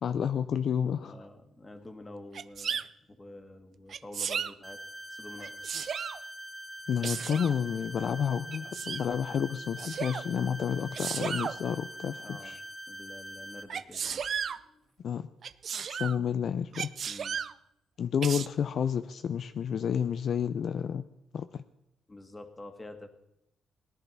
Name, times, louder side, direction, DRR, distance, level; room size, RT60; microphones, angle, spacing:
voice 1, 0.0-1.2 6.9-12.6 15.0-15.3 15.9-16.9 18.0-21.1 21.3-21.6, left 8 dB, 60° left, 0.5 m, -30 dB
voice 2, 1.0-4.8 5.1-5.6 12.2-12.6 12.9-14.8 17.1-17.4 22.1-23.1, left 2 dB, 20° left, 1.9 m, -48 dB
Sneeze, 2.3-2.9 3.9-4.5 5.4-6.2 7.0-7.6 8.5-9.1 9.8-10.2 10.9-11.6 13.7-14.6 15.4-16.2 16.7-17.5 18.2-18.5, right 7 dB, 55° right, 0.5 m, -34 dB
sound 1, 4.6-13.6, right 1 dB, 10° right, 2.1 m, -44 dB
18.0 x 10.5 x 5.9 m
cardioid pair, 90°, 0 cm